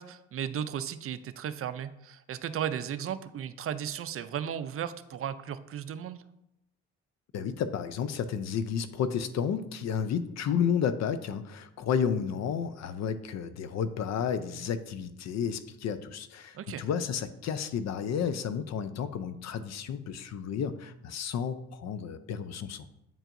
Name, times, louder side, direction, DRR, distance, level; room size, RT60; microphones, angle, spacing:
voice 1, 0.0-6.2 16.5-16.8, right 9 dB, 50° right, 12 dB, 0.4 m, -35 dB
voice 2, 7.3-22.9, left 7 dB, 60° left, 12 dB, 0.5 m, -32 dB
8.9 x 4.5 x 2.6 m, 0.83 s
cardioid pair, 90°, 30 cm